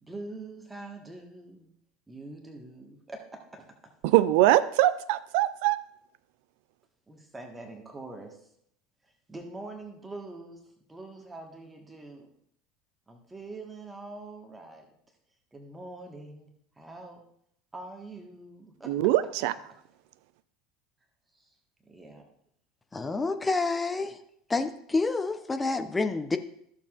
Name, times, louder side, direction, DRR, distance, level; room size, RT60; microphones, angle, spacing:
voice 1, 0.0-1.7 2.1-3.7 7.1-8.4 9.3-10.6 10.9-12.3 13.1-14.9 15.5-16.5 16.8-17.2 17.7-18.9 21.3-21.5 21.9-22.3, right 2 dB, 15° right, 3 dB, 1.5 m, -44 dB
voice 2, 4.0-5.8 18.9-19.5, right 15 dB, 55° right, 17 dB, 0.3 m, -22 dB
voice 3, 22.9-24.2 24.5-26.4, left 3 dB, 15° left, 8 dB, 0.6 m, -28 dB
14.0 x 7.1 x 2.5 m, 0.71 s
figure-of-eight pair, 70°, 0 cm